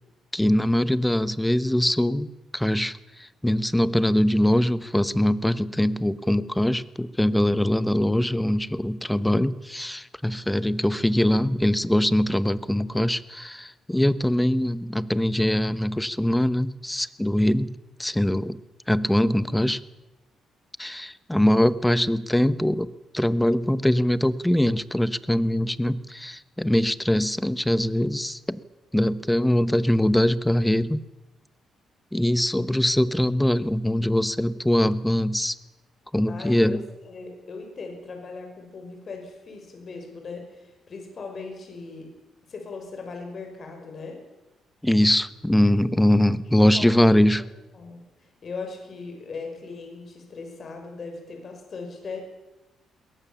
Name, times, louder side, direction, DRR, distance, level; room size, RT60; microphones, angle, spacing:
voice 1, 0.3-17.7 18.0-18.6 18.9-19.8 20.8-28.6 28.9-31.0 32.1-35.6 36.1-36.8 44.8-47.4, left 1 dB, 5° left, 15 dB, 1.0 m, -22 dB
voice 2, 36.3-42.1 42.5-44.2 46.7-47.1 47.7-52.2, left 4 dB, 45° left, 3 dB, 5.8 m, -39 dB
21.5 x 18.0 x 7.1 m, 0.99 s
cardioid pair, 90°, 0 cm